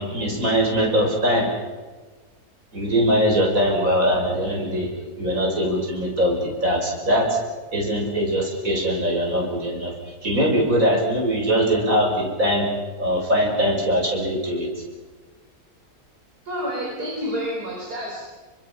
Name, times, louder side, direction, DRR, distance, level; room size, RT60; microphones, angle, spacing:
voice 1, 0.0-1.5 2.7-7.4 7.7-9.9 10.2-12.7 13.0-14.7, equal, 60° right, 0 dB, 6.6 m, -22 dB
voice 2, 16.5-18.2, equal, 80° right, -3 dB, 5.4 m, -29 dB
29.5 x 25.0 x 6.0 m, 1.3 s
omnidirectional pair, 1.7 m